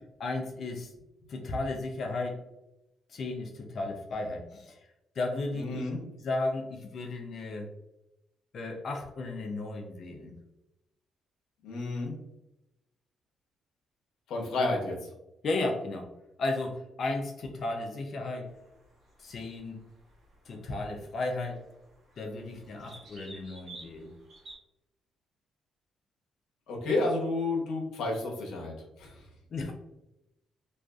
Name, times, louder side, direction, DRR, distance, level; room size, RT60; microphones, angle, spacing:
voice 1, 0.2-0.9 1.3-2.4 3.1-4.8 5.2-5.8 6.2-7.7 8.5-10.3 15.4-16.1 16.4-18.5 19.2-19.8 20.5-21.6 22.2-24.1 29.5-29.7, left 2 dB, 55° left, 3 dB, 0.4 m, -34 dB
voice 2, 5.5-6.0 11.6-12.1 14.3-14.9 26.7-28.7 29.0-29.2, left 2 dB, 80° left, 0 dB, 0.7 m, -30 dB
sound 1, 18.5-24.5, right 2 dB, 55° right, 1.1 m, -53 dB
2.5 x 2.3 x 2.2 m, 0.90 s
cardioid pair, 90°, 0 cm